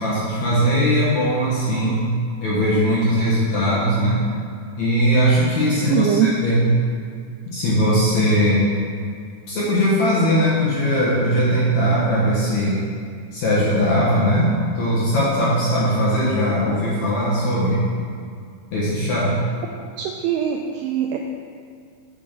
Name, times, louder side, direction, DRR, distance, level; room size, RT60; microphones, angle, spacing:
voice 1, 0.0-2.1 2.4-4.2 4.8-6.7 7.5-8.7 9.5-12.8 13.3-17.8 18.7-19.3, equal, 55° left, -7 dB, 2.2 m, -19 dB
voice 2, 5.9-6.3 20.0-21.2, right 10 dB, 90° right, 2 dB, 2.2 m, -22 dB
8.2 x 7.7 x 5.2 m, 2.2 s
omnidirectional pair, 5.1 m